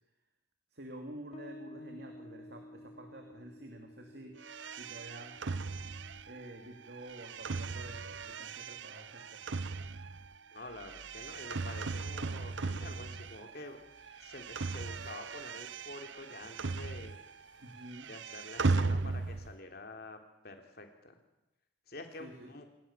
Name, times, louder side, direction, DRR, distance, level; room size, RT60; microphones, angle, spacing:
voice 1, 0.7-4.3 4.7-5.6 6.2-9.4 17.6-18.1 22.2-22.5, right 1 dB, 55° right, 3 dB, 2.8 m, -49 dB
Bass guitar, 1.3-8.5, left 1 dB, 35° left, 1.0 m, -54 dB
sound 1, 4.4-13.7 14.0-17.4 17.7-19.6, right 3 dB, 75° right, 0.8 m, -37 dB
voice 2, 10.5-13.8 14.2-17.2 18.1-21.2 21.9-22.7, left 2 dB, 55° left, 5 dB, 3.3 m, -48 dB
sound 2, 10.6-17.9, left 1 dB, 80° left, 5.8 m, -66 dB
27.0 x 20.0 x 7.4 m, 0.92 s
head